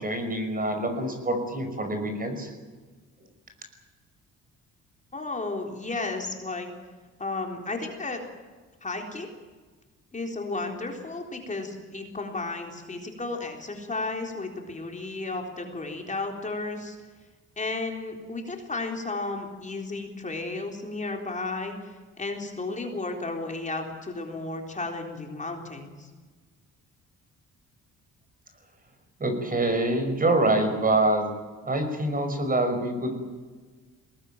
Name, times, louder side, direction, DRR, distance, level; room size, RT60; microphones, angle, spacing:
voice 1, 0.0-2.5 29.2-31.3 31.6-33.2, right 2 dB, 30° right, 7 dB, 5.5 m, -25 dB
voice 2, 5.1-6.7 7.2-8.2 8.8-9.3 10.1-17.0 17.6-26.1, left 3 dB, 25° left, 2 dB, 3.9 m, -33 dB
21.5 x 19.0 x 9.0 m, 1.4 s
cardioid pair, 90°, 30 cm